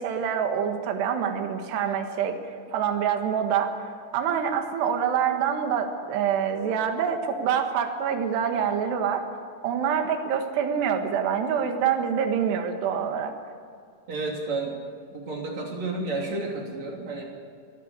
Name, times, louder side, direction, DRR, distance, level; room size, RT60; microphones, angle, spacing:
voice 1, 0.0-2.4 2.7-9.3 9.6-13.3, right 7 dB, 65° right, 5 dB, 3.6 m, -26 dB
voice 2, 14.1-14.8 15.1-17.2, right 3 dB, 40° right, -1 dB, 3.9 m, -31 dB
23.0 x 15.5 x 8.2 m, 2.3 s
omnidirectional pair, 5.5 m